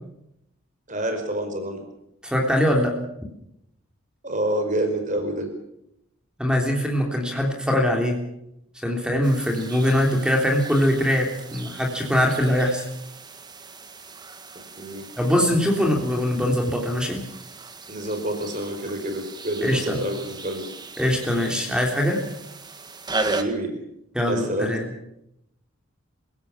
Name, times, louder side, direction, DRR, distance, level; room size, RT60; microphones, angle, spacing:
voice 1, 0.9-1.8 4.2-5.5 14.8-15.0 17.9-20.7 23.1-23.7 24.3-24.7, right 1 dB, 35° right, 6 dB, 5.0 m, -28 dB
voice 2, 2.2-3.0 6.4-8.2 8.8-12.8 15.2-17.2 19.6-20.0 21.0-22.2 24.1-24.8, equal, 5° right, 1 dB, 3.5 m, -22 dB
sound 1, 9.2-23.4, right 3 dB, 20° right, 1.8 m, -37 dB
27.5 x 17.0 x 7.4 m, 0.81 s
head